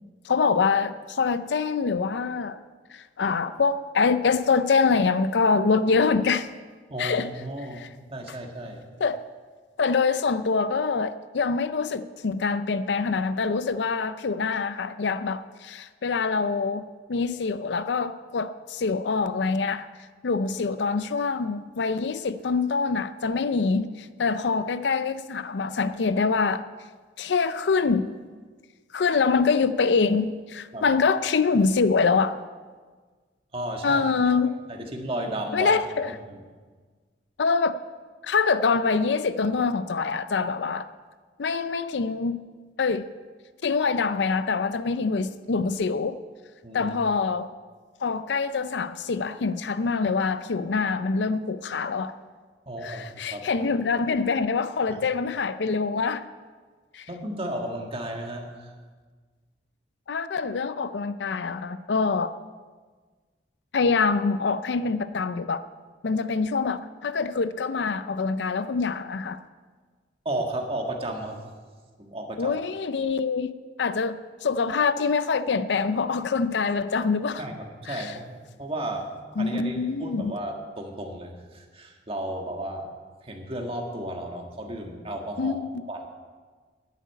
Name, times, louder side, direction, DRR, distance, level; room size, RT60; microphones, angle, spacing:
voice 1, 0.2-2.6 2.9-6.5 7.0-7.3 7.8-7.9 9.0-9.2 9.8-19.9 20.2-26.7 27.2-28.1 28.9-32.4 33.8-34.5 35.5-36.1 37.4-37.8 38.2-40.9 41.4-42.4 42.8-43.1 43.6-46.2 46.7-47.5 48.0-52.1 52.8-56.3 56.9-57.1 60.1-62.3 63.7-65.6 66.0-69.4 72.4-73.5 73.8-77.4 77.9-78.1 79.4-80.3 85.4-85.7, left 4 dB, 75° left, 0.5 m, -25 dB
voice 2, 6.9-7.8 8.1-8.8 30.7-30.9 33.5-34.0 34.4-35.7 36.3-36.4 46.6-46.9 52.6-53.5 54.9-55.0 57.1-58.7 70.2-71.4 72.0-72.6 77.4-78.3 78.6-82.9 83.2-86.1, right 1 dB, 35° right, 1.7 m, -34 dB
10.5 x 8.3 x 9.3 m
head